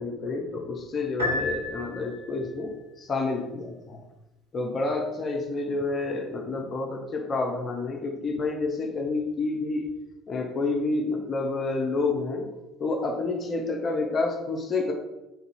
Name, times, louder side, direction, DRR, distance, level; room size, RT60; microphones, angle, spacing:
voice 1, 0.0-4.0 4.5-9.9 10.3-12.5 12.8-14.9, left 3 dB, 35° left, 1 dB, 0.7 m, -29 dB
Piano, 1.2-2.4, left 2 dB, 80° right, 1.0 m, -30 dB
3.9 x 2.7 x 4.4 m, 1.0 s
figure-of-eight pair, 60°, 0 cm